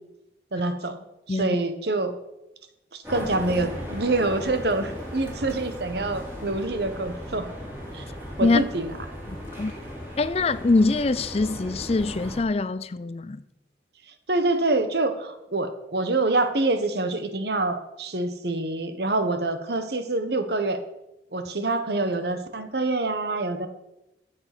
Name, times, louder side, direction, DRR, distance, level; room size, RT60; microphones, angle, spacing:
voice 1, 0.5-1.0 1.3-2.1 2.9-7.5 7.9-8.1 8.4-8.9 14.3-20.8 21.3-23.7, right 2 dB, 60° right, 1.4 m, -26 dB
sound 1, 3.0-12.4, equal, 10° right, 4.4 m, -37 dB
voice 2, 10.2-13.4, left 3 dB, 35° left, 0.4 m, -23 dB
14.5 x 7.8 x 6.1 m
head